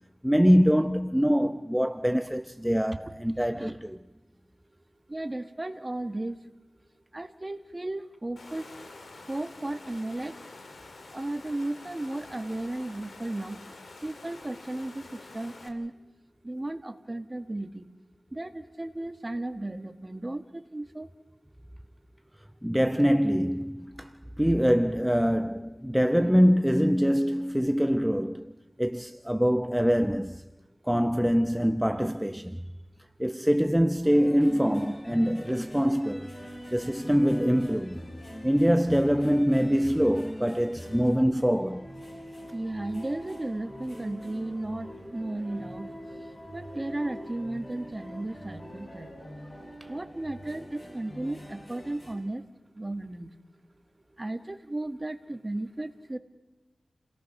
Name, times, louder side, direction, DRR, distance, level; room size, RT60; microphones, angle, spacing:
voice 1, 0.2-4.0 22.6-28.5 28.8-30.4 30.9-32.6 33.2-36.3 36.7-38.0 38.4-41.9, equal, 5° right, 0.7 m, -24 dB
voice 2, 5.1-6.4 7.1-8.6 9.3-10.3 11.1-13.6 14.0-15.0 15.3-15.9 16.4-17.9 18.3-21.1 42.5-45.9 46.5-49.1 49.9-52.4 52.8-53.3 54.2-56.2, right 2 dB, 30° right, 1.7 m, -34 dB
Water, 8.4-15.7, left 3 dB, 75° left, 2.8 m, -47 dB
sound 1, 34.0-52.1, equal, 30° left, 7.9 m, -43 dB
30.0 x 18.0 x 6.0 m
wide cardioid pair, 60°, 0 cm